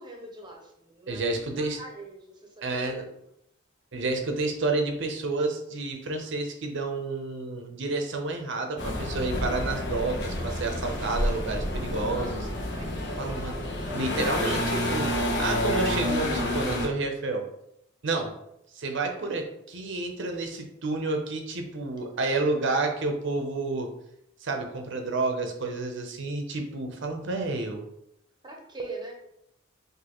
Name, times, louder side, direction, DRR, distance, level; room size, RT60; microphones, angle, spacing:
voice 1, 0.0-3.1 12.7-13.3 22.0-22.5 26.7-26.8 28.4-29.1, right 2 dB, 25° right, 1 dB, 0.8 m, -43 dB
voice 2, 1.1-1.8 2.6-3.0 3.9-12.5 13.2-13.6 13.9-17.5 18.0-18.4 18.7-23.9 24.4-27.8, right 3 dB, 65° right, 4 dB, 0.7 m, -30 dB
sound 1, 8.8-16.9, left 1 dB, 60° left, 1.0 m, -29 dB
6.2 x 2.7 x 3.0 m, 0.78 s
head